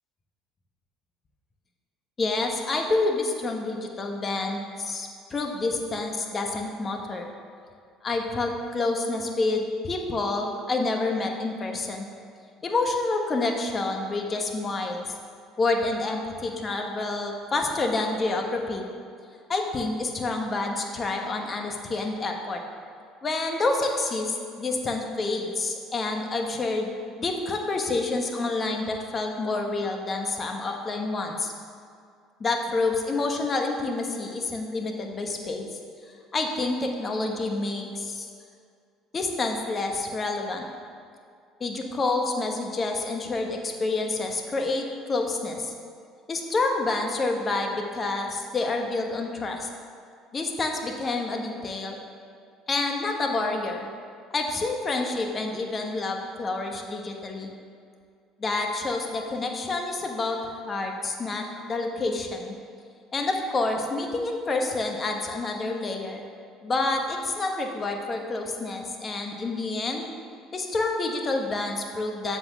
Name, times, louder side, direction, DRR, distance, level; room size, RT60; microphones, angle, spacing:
voice 1, 2.2-7.3 8.0-12.1 12.6-15.0 15.6-18.8 19.5-22.6 23.2-31.5 32.4-35.7 36.3-38.3 39.1-40.6 41.6-45.7 46.3-49.7 50.3-52.0 52.7-53.9 54.3-57.5 58.4-62.6 63.1-66.2 66.6-70.0 70.5-72.4, left 3 dB, 35° left, 3 dB, 1.1 m, -28 dB
7.6 x 4.2 x 5.9 m, 2.3 s
supercardioid pair, 75°, 0 cm